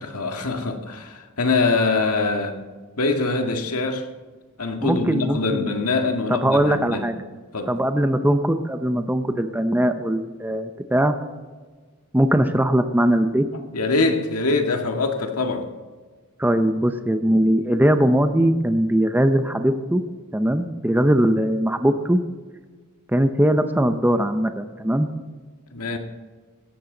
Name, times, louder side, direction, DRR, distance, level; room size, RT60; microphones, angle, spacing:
voice 1, 0.0-2.6 3.0-4.1 4.6-7.1 7.5-7.8 13.7-15.7 25.7-26.0, left 3 dB, 85° left, 5 dB, 1.8 m, -23 dB
voice 2, 4.8-5.7 6.3-7.2 7.7-11.2 12.1-13.5 16.4-20.0 20.3-22.2 23.1-25.1, right 1 dB, 10° right, 8 dB, 0.7 m, -20 dB
17.0 x 13.0 x 3.9 m, 1.4 s
head